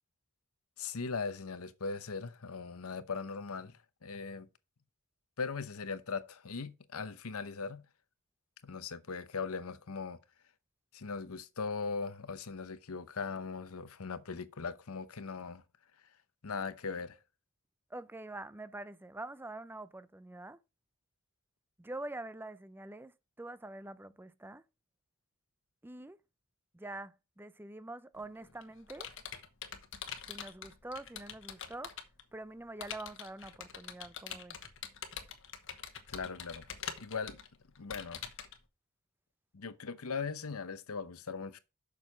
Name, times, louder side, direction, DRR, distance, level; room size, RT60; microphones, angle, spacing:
voice 1, 0.8-4.5 5.4-7.9 8.6-10.2 10.9-15.6 16.4-17.2 36.1-36.7 37.0-37.4 37.8-38.2 39.5-41.6, left 4 dB, 75° left, 0.8 m, -39 dB
voice 2, 17.9-20.6 21.8-24.6 25.8-26.2 26.7-29.1 30.2-32.0 32.3-34.6, right 2 dB, 10° right, 0.5 m, -45 dB
Computer keyboard, 28.2-32.2 32.8-38.6, left 8 dB, 60° left, 1.3 m, -45 dB
7.4 x 6.4 x 5.0 m
head